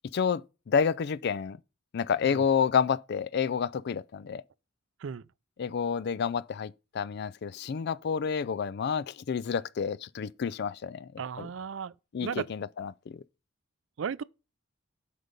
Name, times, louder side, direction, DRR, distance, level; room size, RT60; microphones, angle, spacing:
voice 1, 0.1-1.6 1.9-4.4 5.6-11.1 11.4-11.5 12.1-13.2, left 6 dB, 55° left, 0.4 m, -29 dB
voice 2, 11.2-11.9 12.2-12.5 14.0-14.2, right 6 dB, 65° right, 0.4 m, -35 dB
8.1 x 5.2 x 5.2 m
head